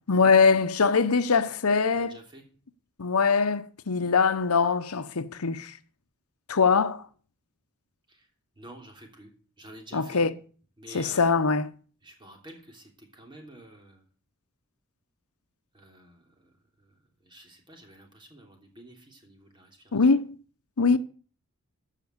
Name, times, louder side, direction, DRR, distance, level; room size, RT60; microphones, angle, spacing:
voice 1, 0.1-2.2 3.0-5.7 6.5-7.0 9.9-10.3 10.9-11.7 19.9-20.4 20.8-21.0, left 5 dB, 85° left, 0.8 m, -22 dB
voice 2, 1.9-2.4 8.1-8.3 8.5-10.3 10.8-11.3 12.0-14.0 15.7-20.1, right 1 dB, 20° right, 3.1 m, -50 dB
14.0 x 5.9 x 8.0 m
head